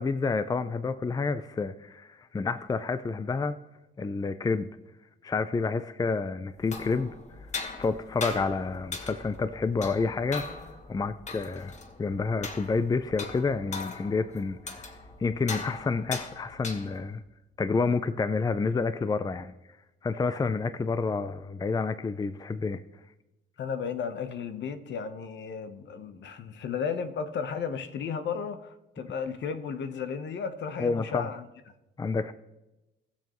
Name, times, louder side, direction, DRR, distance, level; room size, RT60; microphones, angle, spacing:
voice 1, 0.0-3.6 4.0-4.7 5.2-7.1 7.7-10.4 10.9-14.9 15.2-17.2 17.6-19.5 20.0-22.8 30.8-31.3 32.0-32.3, left 4 dB, 20° left, 0.4 m, -29 dB
sound 1, 6.5-17.2, left 3 dB, 35° left, 1.4 m, -40 dB
voice 2, 23.6-31.5, left 6 dB, 65° left, 1.0 m, -34 dB
19.0 x 7.0 x 3.1 m
cardioid pair, 90°, 20 cm